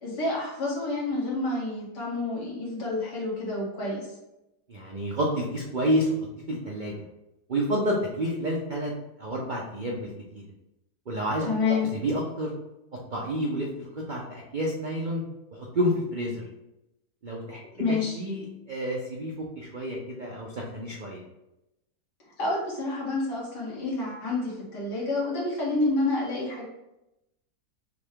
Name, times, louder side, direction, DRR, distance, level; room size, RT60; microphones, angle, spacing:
voice 1, 0.0-4.1 11.4-11.9 17.7-18.2 22.4-26.6, left 3 dB, 80° left, -5 dB, 2.1 m, -29 dB
voice 2, 4.7-6.1 6.5-6.9 7.5-8.9 9.2-10.4 11.1-11.5 11.9-12.5 13.1-15.2 15.5-16.4 17.2-17.6 18.1-21.2, equal, 75° right, -2 dB, 0.4 m, -29 dB
6.1 x 2.2 x 3.6 m, 0.92 s
omnidirectional pair, 1.8 m